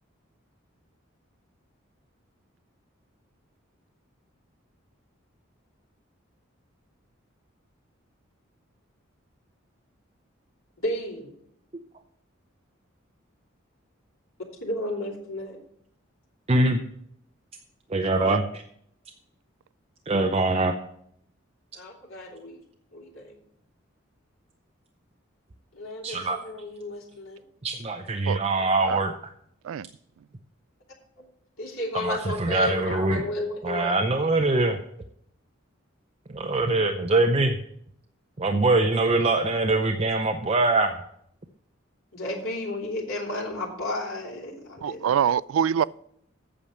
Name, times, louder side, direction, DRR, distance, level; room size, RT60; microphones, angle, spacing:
voice 1, 10.8-11.3 14.6-15.6 21.7-22.6 22.9-23.4 25.7-27.4 31.6-34.0 42.1-45.1, left 1 dB, 90° left, 2.9 m, -33 dB
voice 2, 16.5-16.8 17.9-18.6 20.1-20.7 26.0-26.4 27.6-29.1 31.9-33.2 33.6-34.8 36.3-37.6 38.4-41.0, right 2 dB, 30° right, 0.6 m, -23 dB
voice 3, 44.8-45.8, right 8 dB, 80° right, 0.3 m, -24 dB
8.6 x 7.1 x 6.3 m
head